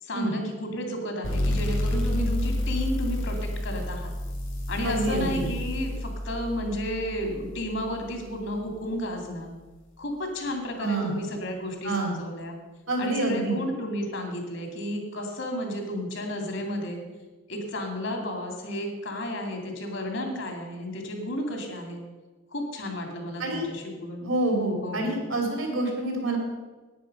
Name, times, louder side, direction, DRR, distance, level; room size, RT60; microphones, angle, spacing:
voice 1, 0.0-4.1 4.7-9.5 10.0-12.6 13.0-17.0 17.5-22.0 22.5-24.3 24.8-25.2, left 1 dB, 60° left, 3 dB, 2.4 m, -32 dB
sound 1, 1.2-8.5, left 1 dB, 75° left, 3.5 m, -30 dB
voice 2, 4.8-5.4 10.8-11.1 11.8-12.1 12.9-13.6 23.4-23.6 24.2-26.4, right 2 dB, 65° right, 2 dB, 2.9 m, -27 dB
10.5 x 9.4 x 5.3 m, 1.2 s
head